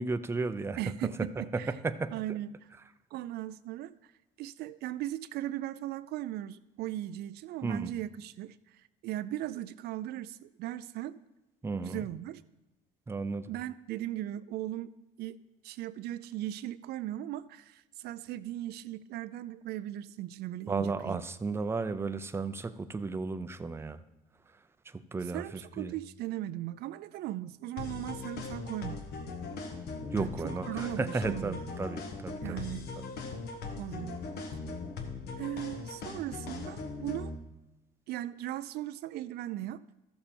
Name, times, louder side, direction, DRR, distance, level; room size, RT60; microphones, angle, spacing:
voice 1, 0.0-2.1 7.6-7.9 11.6-12.1 13.1-13.5 20.7-24.0 24.9-26.0 30.1-32.6 33.0-33.1, right 3 dB, 15° right, 10 dB, 0.5 m, -34 dB
voice 2, 0.8-1.7 2.1-2.7 3.1-4.1 4.4-11.1 11.8-12.4 13.5-14.9 15.2-15.4 15.6-21.2 25.3-29.0 30.2-31.6 32.4-32.9 33.8-34.2 35.4-37.3 38.1-39.8, right 13 dB, 75° right, 14 dB, 0.4 m, -38 dB
sound 1, 27.8-37.4, left 4 dB, 70° left, 1.2 m, -40 dB
13.5 x 7.0 x 4.3 m, 0.99 s
cardioid pair, 110°, 17 cm